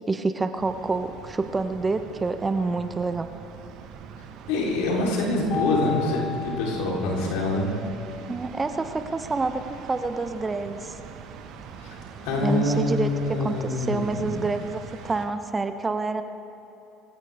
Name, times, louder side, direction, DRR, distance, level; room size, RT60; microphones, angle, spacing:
voice 1, 0.1-3.3 8.3-11.0 12.3-13.1 13.4-16.2, right 3 dB, 25° right, 9 dB, 1.1 m, -27 dB
sound 1, 0.5-15.3, right 6 dB, 60° right, 1.6 m, -43 dB
voice 2, 4.5-7.7 11.8-12.0 12.2-14.4, left 2 dB, 70° left, -2 dB, 3.9 m, -25 dB
Mallet percussion, 5.5-7.8, left 6 dB, 55° left, 2.2 m, -33 dB
24.0 x 16.0 x 3.6 m, 3.0 s
hypercardioid pair, 70°, 0 cm